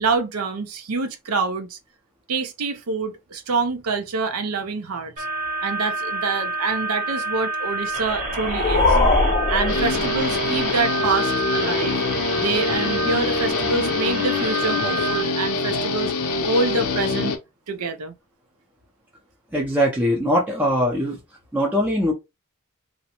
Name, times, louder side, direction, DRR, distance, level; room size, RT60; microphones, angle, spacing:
voice 1, 0.0-1.8 2.3-5.3 5.6-9.0 9.5-12.0 12.4-16.1 16.5-17.3 17.7-18.1, right 4 dB, 90° right, 0.5 m, -26 dB
sound 1, 5.2-15.2, right 3 dB, 35° right, 0.8 m, -29 dB
sound 2, 8.0-10.6, left 2 dB, 30° left, 0.7 m, -21 dB
Guitar, 9.7-17.4, left 3 dB, 85° left, 0.6 m, -24 dB
voice 2, 19.5-21.2 21.5-22.1, equal, 10° right, 0.5 m, -21 dB
2.5 x 2.1 x 2.8 m
head